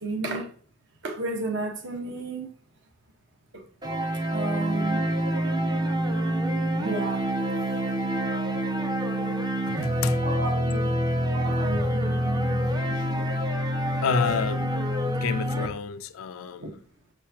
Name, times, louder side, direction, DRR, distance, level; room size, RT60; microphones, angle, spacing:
voice 1, 0.0-0.5 1.0-2.5 3.5-3.6 4.3-5.1 6.8-7.3 10.2-10.9 11.3-13.3 16.6-16.7, right 2 dB, 55° right, 1.1 m, -33 dB
sound 1, 3.8-15.7, equal, 20° right, 0.6 m, -26 dB
voice 2, 9.7-10.3 14.0-14.7 15.1-16.8, left 6 dB, 70° left, 0.4 m, -29 dB
6.6 x 6.4 x 2.8 m
head